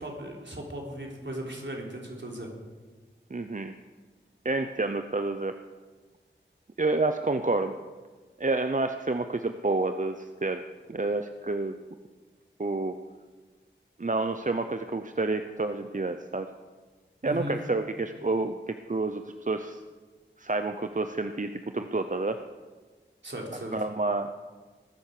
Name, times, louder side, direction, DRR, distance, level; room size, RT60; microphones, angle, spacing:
voice 1, 0.0-2.5 17.2-17.6 23.2-23.8, right 1 dB, 65° right, -1 dB, 3.7 m, -37 dB
voice 2, 3.3-3.7 4.4-5.5 6.8-7.7 8.4-10.6 10.9-11.7 12.6-12.9 14.0-16.5 17.2-19.8 20.4-22.4 23.7-24.3, right 3 dB, 40° right, 8 dB, 0.7 m, -29 dB
19.5 x 10.5 x 6.7 m, 1.4 s
wide cardioid pair, 55°, 20 cm